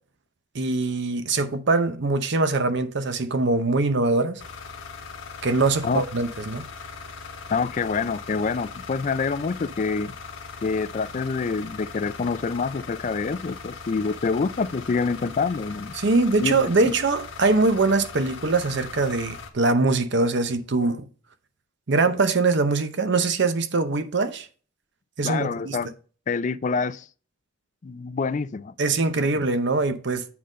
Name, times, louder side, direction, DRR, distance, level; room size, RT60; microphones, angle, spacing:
voice 1, 0.5-4.4 5.4-6.6 16.0-21.1 21.9-24.5 25.2-25.8 28.8-30.3, right 3 dB, 60° right, 0.7 m, -22 dB
sound 1, 4.4-19.5, left 5 dB, 70° left, 1.3 m, -40 dB
voice 2, 7.5-10.1 10.6-16.0 16.4-16.9 25.2-25.9 26.3-27.0 27.8-28.7, left 4 dB, 35° left, 0.3 m, -26 dB
8.5 x 3.8 x 5.2 m
head